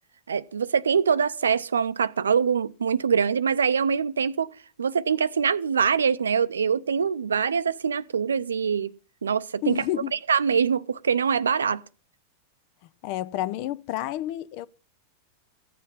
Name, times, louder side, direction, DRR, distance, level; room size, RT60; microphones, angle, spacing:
voice 1, 0.3-4.5 4.8-8.9 9.2-9.8 10.1-11.8, right 6 dB, 70° right, 0.6 m, -24 dB
voice 2, 9.6-10.1 13.0-14.7, left 13 dB, 45° left, 0.6 m, -30 dB
15.5 x 9.4 x 5.5 m
figure-of-eight pair, 90°, 0 cm